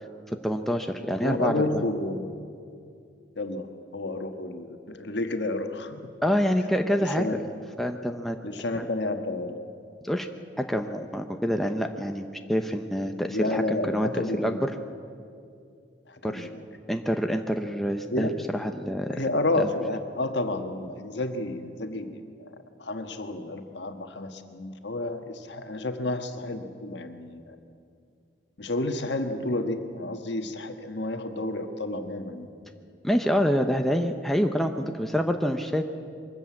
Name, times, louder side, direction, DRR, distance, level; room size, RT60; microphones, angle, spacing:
voice 1, 0.4-1.8 6.2-7.3 7.8-8.4 8.7-8.9 10.0-10.3 10.6-14.7 16.2-16.5 16.9-19.2 19.6-19.7 33.0-35.8, equal, ahead, 5 dB, 0.7 m, -27 dB
voice 2, 1.2-2.4 3.4-6.0 7.0-7.4 8.4-9.6 13.3-14.6 16.1-16.6 18.1-18.3 19.1-22.5 22.8-27.6 28.6-32.5, left 2 dB, 65° left, 6 dB, 1.4 m, -31 dB
22.5 x 13.5 x 8.5 m, 2.4 s
head